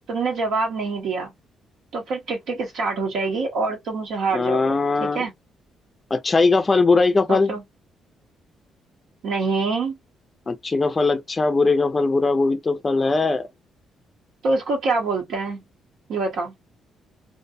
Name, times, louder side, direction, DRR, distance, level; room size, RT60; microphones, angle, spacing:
voice 1, 0.1-1.3 1.9-5.3 7.3-7.6 9.2-9.9 14.4-15.6 16.1-16.5, right 3 dB, 75° right, 0.8 m, -25 dB
voice 2, 4.3-5.2 6.1-7.5 10.5-13.5, left 3 dB, 25° left, 0.4 m, -20 dB
2.5 x 2.1 x 2.5 m
cardioid pair, 90°, 0 cm